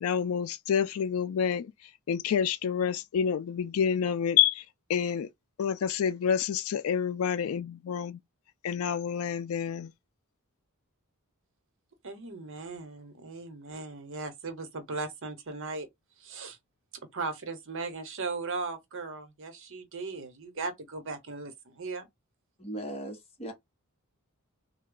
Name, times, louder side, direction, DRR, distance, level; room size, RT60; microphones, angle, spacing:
voice 1, 0.0-1.7 2.1-4.6 4.9-5.3 5.6-8.2 8.6-9.9, left 8 dB, 70° left, 0.4 m, -28 dB
voice 2, 12.0-15.9 16.2-16.6 17.1-22.1, right 4 dB, 60° right, 0.9 m, -37 dB
voice 3, 22.6-23.5, right 1 dB, 30° left, 1.1 m, -38 dB
3.3 x 2.2 x 3.8 m
head